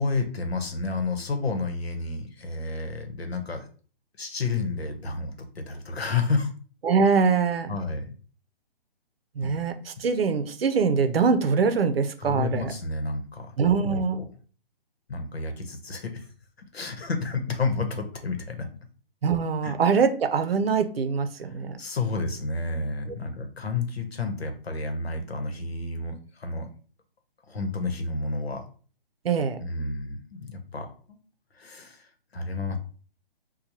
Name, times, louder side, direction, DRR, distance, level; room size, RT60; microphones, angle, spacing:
voice 1, 0.0-3.7 4.2-6.5 7.7-8.1 9.4-9.5 12.2-13.6 13.8-14.2 15.1-16.3 16.7-18.7 19.6-19.7 21.4-26.6 27.5-28.6 29.6-31.2 31.5-32.8, left 3 dB, 90° left, 6 dB, 0.9 m, -30 dB
voice 2, 6.8-7.8 9.4-12.7 13.6-14.2 19.2-21.8 29.2-29.6, right 5 dB, 75° right, 9 dB, 0.6 m, -23 dB
4.4 x 2.3 x 2.7 m, 0.41 s
hypercardioid pair, 150°, 30 cm